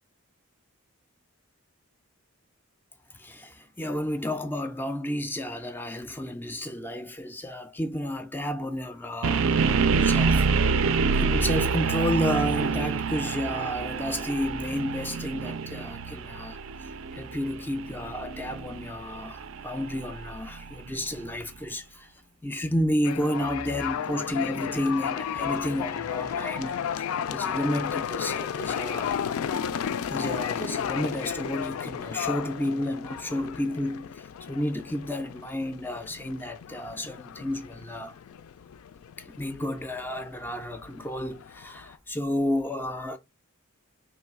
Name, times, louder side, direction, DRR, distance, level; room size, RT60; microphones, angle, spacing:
voice 1, 3.1-9.6 10.0-10.5 11.1-16.6 17.1-22.1 22.4-29.2 30.1-38.2 39.2-43.2, left 1 dB, 10° left, 0.3 m, -31 dB
sound 1, 9.2-21.2, right 5 dB, 65° right, 0.4 m, -27 dB
sound 2, 23.0-41.9, left 8 dB, 80° left, 0.4 m, -33 dB
3.1 x 3.0 x 4.6 m
head